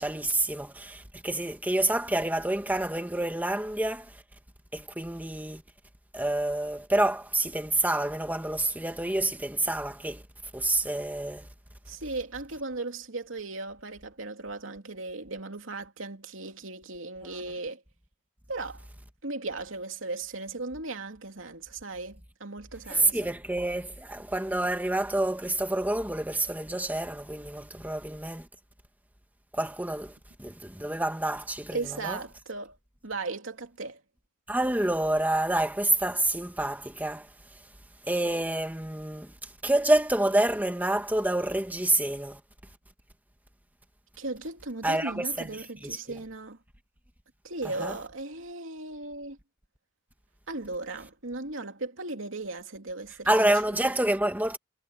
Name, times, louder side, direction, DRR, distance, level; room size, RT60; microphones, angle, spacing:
voice 1, 0.0-4.1 4.7-5.6 6.1-10.2 10.5-11.5 22.9-28.5 29.5-32.2 34.5-37.3 38.1-39.3 39.6-42.4 44.8-46.0 47.8-48.0 53.3-54.6, right 1 dB, 10° right, 1.6 m, -28 dB
voice 2, 11.9-17.8 18.5-18.9 19.2-23.2 31.7-32.8 33.0-34.0 44.2-46.6 47.4-49.4 50.5-53.8, right 3 dB, 90° right, 2.8 m, -37 dB
head